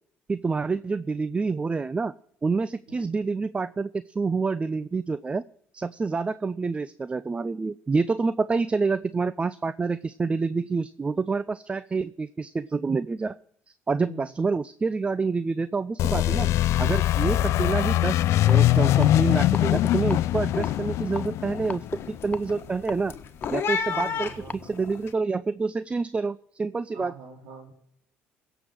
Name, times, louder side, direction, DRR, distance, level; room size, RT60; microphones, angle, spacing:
voice 1, 0.3-2.1 2.4-5.4 5.7-13.4 13.9-16.5 16.8-23.1 23.5-27.1, right 4 dB, 25° right, 16 dB, 0.4 m, -27 dB
voice 2, 14.0-14.3 23.9-24.8 26.9-27.7, right 2 dB, 80° right, 0 dB, 4.1 m, -43 dB
sound 1, 16.0-22.6, left 14 dB, 70° left, 0.4 m, -22 dB
sound 2, 18.4-18.8 19.1-25.1, left 7 dB, 55° left, 1.5 m, -34 dB
sound 3, 18.5-18.6 19.0-19.6 20.0-20.2 20.6-21.8 22.3-24.1 24.5-24.6, left 4 dB, 25° left, 0.8 m, -37 dB
16.5 x 7.0 x 6.1 m, 0.69 s
supercardioid pair, 80°, 5 cm